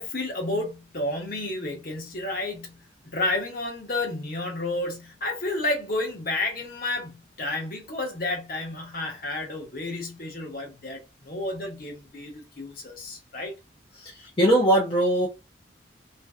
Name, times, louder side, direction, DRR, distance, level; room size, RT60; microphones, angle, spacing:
voice 1, 0.0-13.5 14.2-14.3, left 2 dB, 50° left, 0.9 m, -31 dB
voice 2, 13.9-15.3, right 1 dB, 30° left, 0.6 m, -21 dB
2.5 x 2.5 x 2.3 m
head